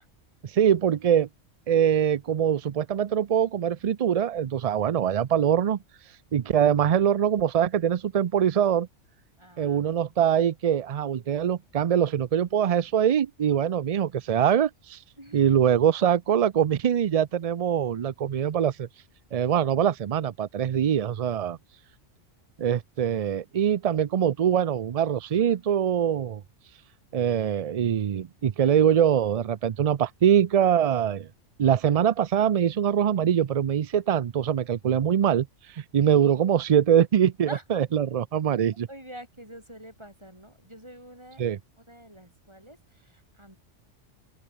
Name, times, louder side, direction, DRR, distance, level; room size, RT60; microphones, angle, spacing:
voice 1, 0.4-1.3 1.7-5.8 6.3-8.9 9.6-15.0 15.3-18.9 19.3-21.6 22.6-26.4 27.1-31.3 31.6-35.5 35.7-38.9 41.4-41.6, right 9 dB, 65° right, 0.3 m, -23 dB
voice 2, 9.4-10.2 15.2-15.6 37.5-37.8 38.9-41.5 41.8-43.6, right 1 dB, 20° right, 7.7 m, -46 dB
open air
omnidirectional pair, 1.2 m